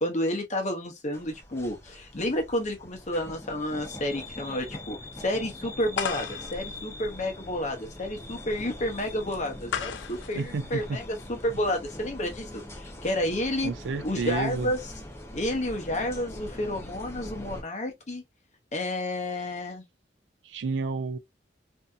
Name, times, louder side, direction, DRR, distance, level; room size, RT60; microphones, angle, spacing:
voice 1, 0.0-13.7 14.0-14.8 15.3-18.2 18.7-19.8, left 1 dB, 40° left, 0.8 m, -30 dB
sound 1, 1.1-17.6, left 1 dB, 15° left, 0.5 m, -42 dB
sound 2, 5.9-11.6, left 7 dB, 80° left, 0.4 m, -37 dB
voice 2, 10.3-11.0 13.6-14.7 20.4-21.2, right 4 dB, 85° right, 0.4 m, -31 dB
2.7 x 2.6 x 2.3 m
head